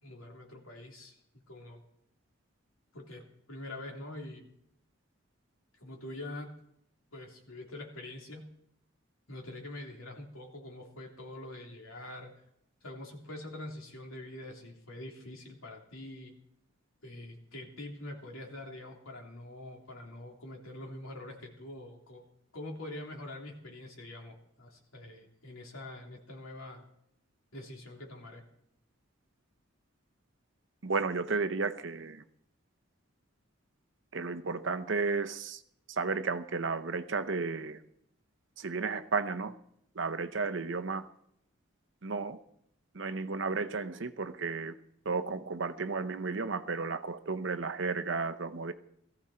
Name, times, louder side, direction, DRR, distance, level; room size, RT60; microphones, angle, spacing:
voice 1, 0.0-1.1 1.5-1.8 2.9-4.5 5.8-6.5 7.1-8.5 9.3-12.3 12.8-16.3 17.0-22.3 22.5-26.8 27.5-28.4, left 1 dB, 90° left, 0 dB, 3.3 m, -45 dB
voice 2, 30.8-32.2 34.1-35.6 35.9-37.8 38.6-39.5 39.9-41.1 42.0-42.4 42.9-44.7 45.0-48.7, right 4 dB, 65° right, 10 dB, 0.8 m, -33 dB
18.0 x 14.5 x 4.4 m, 0.74 s
head